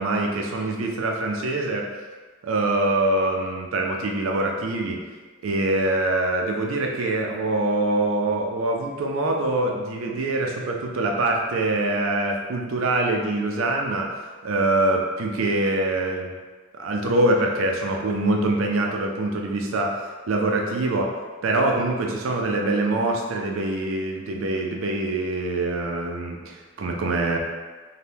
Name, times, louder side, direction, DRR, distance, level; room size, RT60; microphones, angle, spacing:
voice 1, 0.0-1.9 2.4-5.0 5.4-14.1 14.4-16.3 16.7-20.0 20.3-21.2 21.4-27.4, right 2 dB, 85° right, 1 dB, 0.4 m, -24 dB
2.7 x 2.2 x 3.3 m, 1.4 s
head